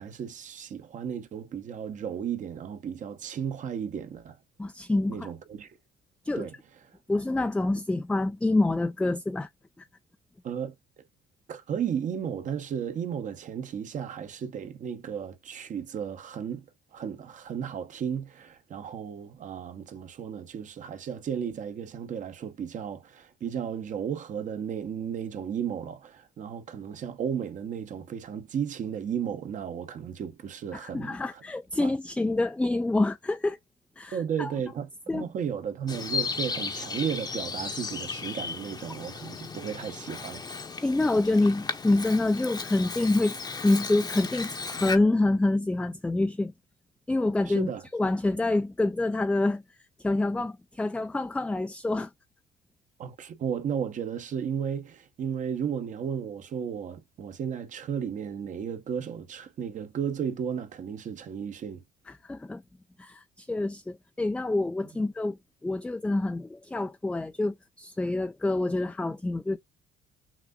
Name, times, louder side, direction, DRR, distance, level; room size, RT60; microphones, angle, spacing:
voice 1, 0.0-4.4 5.1-5.7 6.4-6.5 10.4-10.7 11.5-16.6 16.9-31.4 31.8-31.9 34.1-40.4 47.5-47.8 53.0-61.8, right 8 dB, 50° right, 0.9 m, -34 dB
voice 2, 4.6-5.3 6.2-6.5 7.1-9.5 30.7-33.6 34.0-34.5 35.1-35.3 40.8-46.5 47.1-49.6 50.0-52.1 62.1-62.6 63.0-69.6, left 2 dB, 5° left, 0.3 m, -27 dB
Bird vocalization bird call bird song, 35.9-45.0, left 5 dB, 25° left, 0.8 m, -35 dB
5.9 x 2.6 x 2.3 m
cardioid pair, 110°, 17 cm